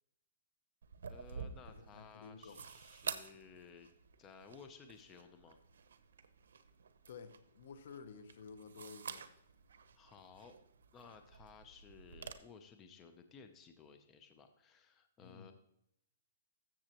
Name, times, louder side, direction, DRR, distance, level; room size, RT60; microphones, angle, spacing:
sound 1, 0.8-12.3, right 6 dB, 85° right, 0.8 m, -50 dB
voice 1, 1.0-3.9 4.2-5.6 9.9-10.6 10.9-15.5, left 5 dB, 20° left, 7 dB, 0.7 m, -57 dB
voice 2, 1.7-2.6 7.1-9.3 15.2-15.5, left 5 dB, 65° left, 12 dB, 0.9 m, -52 dB
13.5 x 7.5 x 3.0 m, 0.77 s
hypercardioid pair, 160°, 0 cm